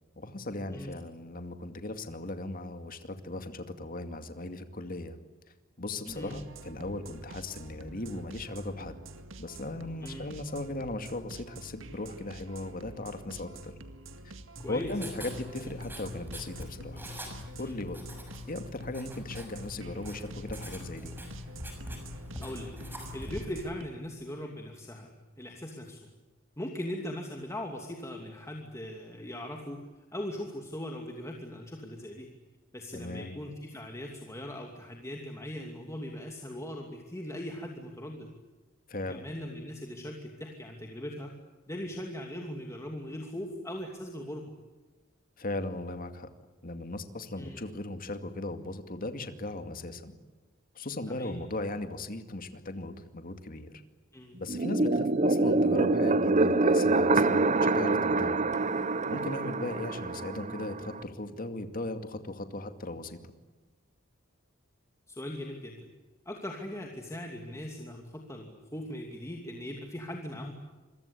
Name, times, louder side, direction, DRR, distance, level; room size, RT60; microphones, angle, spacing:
voice 1, 0.2-5.2 5.8-9.0 9.4-13.7 14.2-14.3 14.7-17.0 17.6-18.0 18.5-21.1 32.9-33.3 38.9-39.3 45.4-46.3 46.6-50.1 50.7-53.7 54.4-58.4 59.1-63.2, left 2 dB, 45° left, 7 dB, 2.3 m, -37 dB
sound 1, 6.1-23.9, right 2 dB, 70° right, 2.0 m, -48 dB
voice 2, 14.6-14.9 17.6-17.8 22.4-22.7 23.1-26.0 26.6-29.8 30.1-32.3 32.7-38.3 39.1-41.3 41.7-44.5 47.4-47.6 51.0-51.4 54.1-54.4 65.1-65.9 66.3-70.5, left 1 dB, 15° left, 1 dB, 2.7 m, -40 dB
Writing, 14.6-23.5, left 1 dB, 10° right, 6.4 m, -43 dB
sound 2, 54.5-61.0, right 2 dB, 35° right, 1.0 m, -26 dB
27.0 x 23.0 x 8.5 m, 1.2 s
head